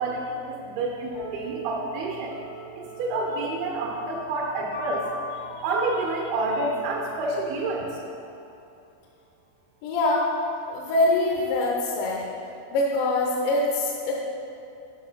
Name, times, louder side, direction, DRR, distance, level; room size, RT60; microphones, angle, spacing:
voice 1, 0.0-2.3 2.8-5.1 5.6-8.0, right 2 dB, 75° right, -1 dB, 2.3 m, -28 dB
sound 1, 1.1-8.7, equal, 30° left, 0.8 m, -41 dB
voice 2, 9.8-10.3 10.7-12.2 12.7-14.2, left 2 dB, 75° left, -2 dB, 3.0 m, -24 dB
9.7 x 6.0 x 5.7 m, 2.8 s
omnidirectional pair, 5.4 m